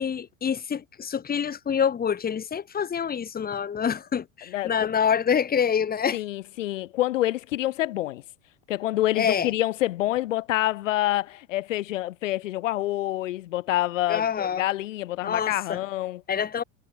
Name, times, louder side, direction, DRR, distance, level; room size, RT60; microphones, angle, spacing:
voice 1, 0.0-6.2 9.2-9.5 14.1-14.6 15.2-15.8 16.3-16.6, left 7 dB, 20° left, 3.3 m, -26 dB
voice 2, 4.5-4.9 6.1-8.2 8.7-16.2, left 15 dB, 65° left, 2.8 m, -27 dB
hypercardioid pair, 95°, 41 cm